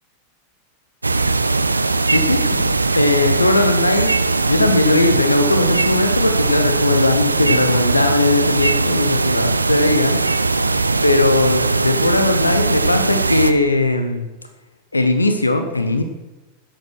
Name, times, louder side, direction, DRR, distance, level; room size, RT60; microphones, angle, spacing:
sound 1, 1.0-13.5, right 3 dB, 80° right, 0.5 m, -19 dB
voice 1, 2.1-2.6 2.9-4.1 4.5-10.5 11.0-14.3 14.9-16.0, left 2 dB, 80° left, 7 dB, 0.9 m, -18 dB
10.5 x 8.1 x 6.1 m, 1.1 s
figure-of-eight pair, 90°, 0 cm